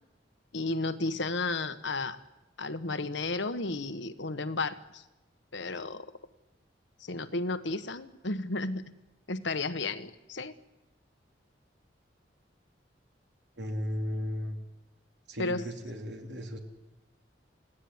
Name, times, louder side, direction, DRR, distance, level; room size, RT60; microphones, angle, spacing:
voice 1, 0.5-2.2 2.6-5.0 5.5-6.1 7.0-8.9 9.3-10.5 15.4-15.6, left 3 dB, 75° left, 10 dB, 1.4 m, -33 dB
voice 2, 13.6-14.6 15.3-16.6, equal, 65° right, 3 dB, 3.7 m, -35 dB
28.5 x 17.5 x 9.7 m, 1.0 s
head